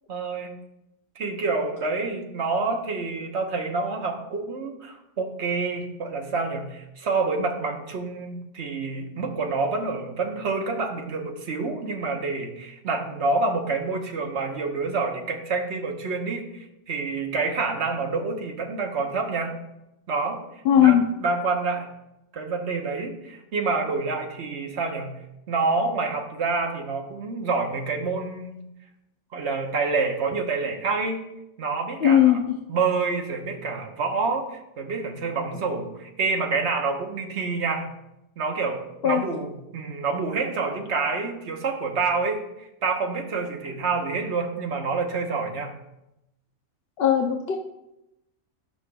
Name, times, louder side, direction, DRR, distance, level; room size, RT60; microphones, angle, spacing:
voice 1, 0.1-0.6 1.1-19.6 20.1-20.4 20.8-21.9 22.3-28.6 29.3-31.2 31.6-32.4 32.7-37.9 38.4-45.8, right 4 dB, 55° right, 3 dB, 1.3 m, -27 dB
voice 2, 20.6-21.0 32.0-32.6 39.0-39.2 47.0-47.6, left 10 dB, 55° left, 2 dB, 0.8 m, -18 dB
15.5 x 5.7 x 2.3 m, 0.89 s
omnidirectional pair, 1.4 m